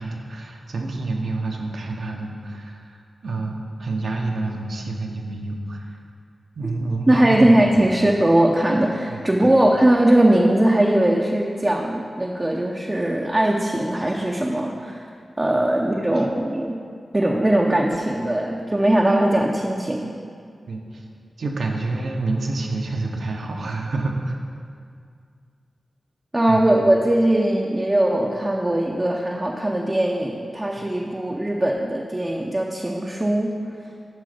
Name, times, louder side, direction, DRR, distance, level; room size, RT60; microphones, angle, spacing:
voice 1, 0.0-3.0 3.2-6.0 6.5-7.8 9.1-9.5 15.5-15.6 16.1-16.2 20.7-21.0 21.4-24.4 26.5-26.6, right 2 dB, 75° right, 2 dB, 0.9 m, -28 dB
voice 2, 7.1-15.0 15.4-16.8 17.1-20.1 26.3-33.6, right 1 dB, 20° right, -1 dB, 0.6 m, -20 dB
7.7 x 5.6 x 5.0 m, 2.3 s
wide cardioid pair, 85°, 0 cm